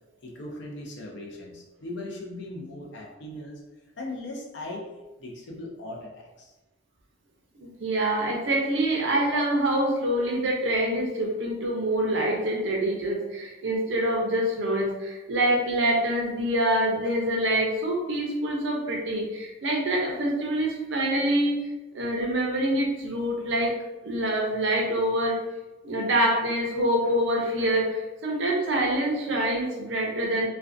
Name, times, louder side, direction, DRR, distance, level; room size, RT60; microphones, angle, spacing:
voice 1, 0.2-3.6 4.0-4.9 5.2-6.5, left 1 dB, 60° left, -1 dB, 0.5 m, -38 dB
voice 2, 7.6-21.6 21.9-23.7 24.0-25.4 25.8-30.5, right 1 dB, 65° right, 0 dB, 0.5 m, -25 dB
2.5 x 2.2 x 2.4 m, 1.1 s
head